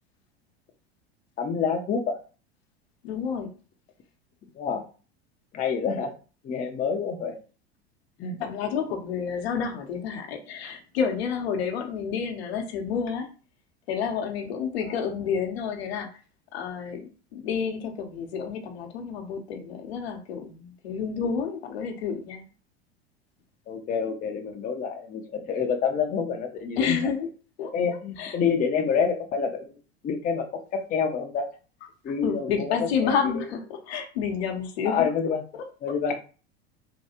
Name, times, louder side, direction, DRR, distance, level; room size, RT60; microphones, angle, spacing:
voice 1, 1.4-2.2 4.6-4.8 5.5-6.1 6.4-7.4 8.2-8.4 14.9-15.0 23.7-27.0 27.7-29.8 30.0-31.5 32.0-33.4 34.8-35.4 35.8-36.2, left 6 dB, 25° left, 4 dB, 0.5 m, -27 dB
voice 2, 3.0-3.5 8.4-13.3 13.9-16.1 16.5-22.4 26.8-27.3 27.6-28.4 32.2-35.1 35.5-35.9, left 6 dB, 75° left, 4 dB, 0.8 m, -30 dB
3.4 x 2.3 x 2.8 m, 0.36 s
hypercardioid pair, 85°, 32 cm